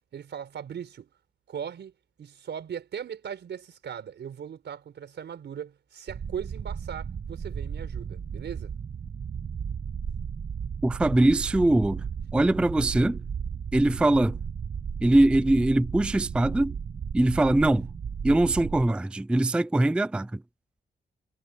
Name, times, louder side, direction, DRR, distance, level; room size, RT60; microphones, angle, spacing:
voice 1, 0.1-1.1 1.5-1.9 2.2-8.7, right 8 dB, 80° right, 5.0 m, -38 dB
sound 1, 6.1-18.9, right 7 dB, 45° right, 1.1 m, -35 dB
voice 2, 10.8-12.0 12.3-13.2 13.7-14.4 15.0-16.7 17.1-17.9 18.2-20.4, right 1 dB, 5° right, 0.4 m, -22 dB
wide cardioid pair, 160°, 18 cm